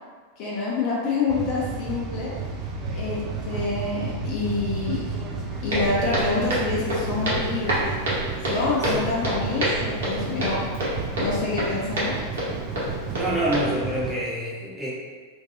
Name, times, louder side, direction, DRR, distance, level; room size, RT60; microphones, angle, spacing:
voice 1, 0.4-2.3 2.9-5.2 5.6-7.9 8.4-10.6 11.2-12.2, left 3 dB, 40° left, -5 dB, 0.5 m, -27 dB
sound 1, 1.3-14.1, right 5 dB, 30° right, 0.4 m, -33 dB
sound 2, 2.4-7.6, left 1 dB, 90° right, 1.1 m, -37 dB
Walk footsteps, 5.7-13.6, right 1 dB, 65° right, 0.8 m, -28 dB
voice 2, 13.1-14.9, right 1 dB, ahead, -8 dB, 0.8 m, -27 dB
2.3 x 2.2 x 2.8 m, 1.5 s
figure-of-eight pair, 90°, 0 cm